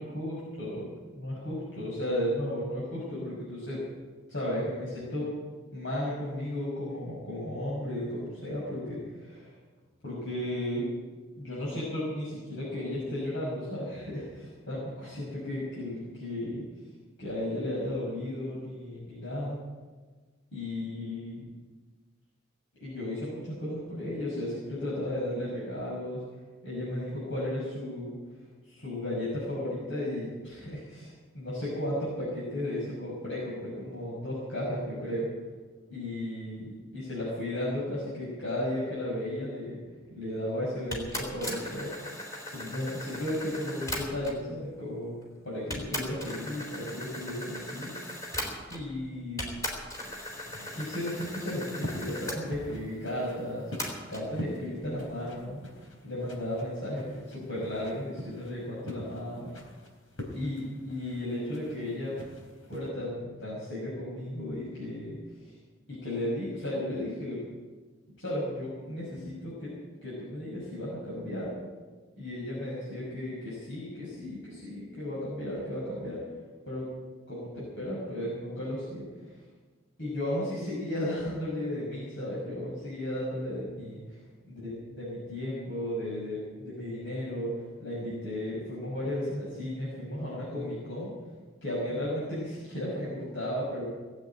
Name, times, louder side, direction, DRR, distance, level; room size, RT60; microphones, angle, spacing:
voice 1, 0.0-0.9 1.1-3.8 4.3-5.3 5.7-9.5 10.0-10.9 11.4-16.6 17.2-19.6 20.5-21.4 22.8-26.2 26.6-28.2 28.7-35.3 35.9-39.8 40.1-41.9 42.5-45.1 45.4-48.0 48.7-49.4 50.7-53.6 54.1-55.6 56.0-59.5 60.3-62.2 62.7-65.5 65.9-67.4 68.2-69.7 70.0-71.5 72.2-76.2 76.7-76.9 77.3-79.4 80.0-84.2 84.5-84.7 85.0-87.5 87.8-91.1 91.6-93.8, left 1 dB, 65° left, -7 dB, 6.1 m, -34 dB
sound 1, 40.9-44.5 45.2-45.3 45.7-49.0 49.4-52.4 53.8-54.3, equal, 15° left, 3.7 m, -38 dB
sound 2, 50.1-62.9, left 1 dB, 90° left, 4.0 m, -45 dB
19.0 x 8.6 x 8.9 m, 1.4 s
head